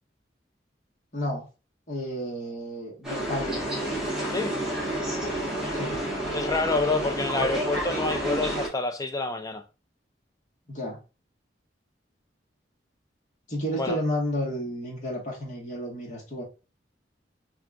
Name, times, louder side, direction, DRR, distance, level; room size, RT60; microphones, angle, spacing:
voice 1, 1.1-1.5 1.9-3.6 5.7-6.0 10.7-11.0 13.5-16.4, equal, 45° left, 1.7 m, -31 dB
sound 1, 3.0-8.7, right 1 dB, 5° right, 1.5 m, -30 dB
voice 2, 6.3-9.6 13.8-14.0, left 3 dB, 20° left, 0.5 m, -28 dB
3.6 x 3.5 x 2.5 m
head